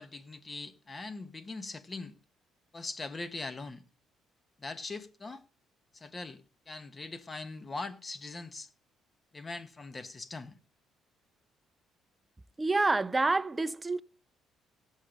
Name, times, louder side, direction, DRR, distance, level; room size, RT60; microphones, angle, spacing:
voice 1, 0.0-2.1 2.7-3.8 4.6-5.4 5.9-6.4 6.7-8.7 9.3-10.6, left 3 dB, 30° left, 1.3 m, -41 dB
voice 2, 12.6-14.0, right 3 dB, 20° right, 0.5 m, -27 dB
17.5 x 7.4 x 5.1 m
supercardioid pair, 80°, 0 cm